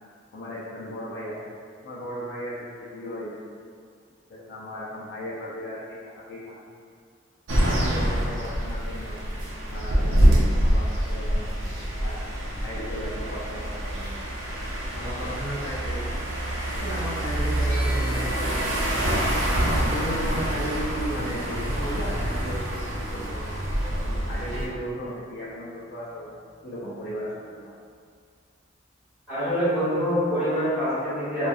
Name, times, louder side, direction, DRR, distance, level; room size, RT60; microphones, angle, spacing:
voice 1, 0.3-1.3 1.8-3.4 4.3-6.6 7.6-9.2 9.7-11.5 12.0-12.2 12.5-14.1 14.9-16.0 16.8-18.9 19.9-23.4 23.9-27.7, equal, 55° left, -8 dB, 0.4 m, -36 dB
sound 1, 7.5-24.7, equal, 80° right, 0.5 m, -26 dB
sound 2, 17.7-27.3, equal, 40° right, 1.2 m, -47 dB
voice 2, 29.3-31.5, equal, 5° right, -15 dB, 1.3 m, -25 dB
2.6 x 2.2 x 2.3 m, 2.1 s
head